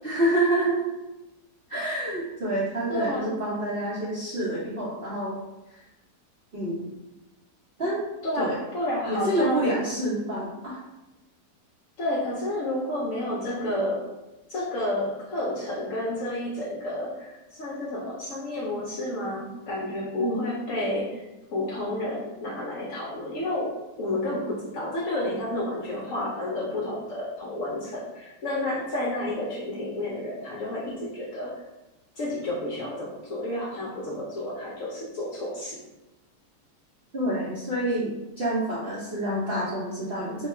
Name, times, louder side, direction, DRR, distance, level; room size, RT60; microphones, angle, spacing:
voice 1, 0.0-0.8 1.7-5.4 6.5-6.9 7.8-8.1 8.4-8.6 9.0-10.8 20.2-20.5 37.1-40.5, right 1 dB, 55° right, -9 dB, 0.6 m, -27 dB
voice 2, 2.9-3.4 8.2-9.7 12.0-14.1 14.5-21.2 21.5-31.5 32.1-35.8, left 1 dB, 65° left, -4 dB, 0.8 m, -30 dB
2.8 x 2.3 x 4.2 m, 0.98 s
omnidirectional pair, 1.9 m